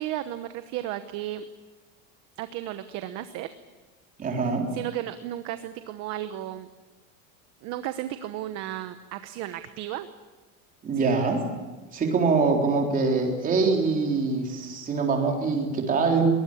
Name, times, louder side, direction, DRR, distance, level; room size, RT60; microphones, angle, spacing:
voice 1, 0.0-1.4 2.4-3.5 4.4-6.7 7.6-10.1 11.0-11.1, right 13 dB, 40° right, 10 dB, 1.0 m, -34 dB
voice 2, 4.2-4.7 10.8-11.4 11.9-16.3, right 4 dB, 20° right, 2 dB, 3.8 m, -24 dB
23.0 x 20.0 x 8.7 m, 1.3 s
cardioid pair, 175°, 42 cm